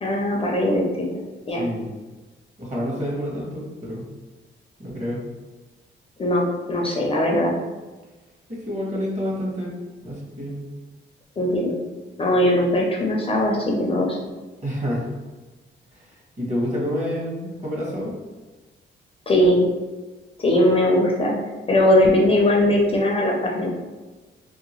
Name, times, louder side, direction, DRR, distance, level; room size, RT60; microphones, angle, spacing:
voice 1, 0.0-1.1 1.5-1.6 6.2-7.5 11.4-11.8 12.2-14.2 19.3-19.7 20.4-21.3 21.7-23.7, left 1 dB, 30° left, -2 dB, 0.4 m, -20 dB
voice 2, 1.5-1.9 2.6-4.1 4.8-5.2 8.6-9.7 10.0-10.6 14.6-15.1 15.9-18.1, equal, 35° right, -5 dB, 1.1 m, -28 dB
2.7 x 2.7 x 2.9 m, 1.2 s
wide cardioid pair, 140°, 20 cm